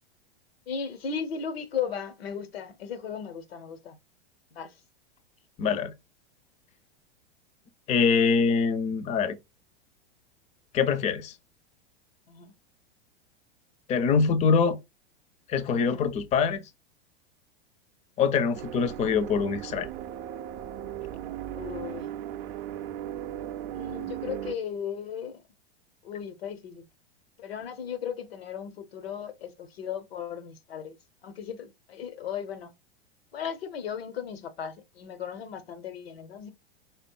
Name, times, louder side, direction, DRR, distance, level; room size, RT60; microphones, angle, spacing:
voice 1, 0.7-4.0 4.5-4.8 12.3-12.5 21.6-22.1 23.7-25.4 26.0-26.8 27.4-31.0 31.2-32.7 33.3-36.5, left 7 dB, 80° left, 0.9 m, -36 dB
voice 2, 5.6-5.9 7.9-9.4 10.7-11.3 13.9-14.8 15.5-16.6 18.2-19.9, left 5 dB, 25° left, 0.5 m, -24 dB
sound 1, 18.5-24.6, right 11 dB, 40° right, 0.5 m, -37 dB
4.3 x 3.7 x 2.2 m
hypercardioid pair, 105°, 30 cm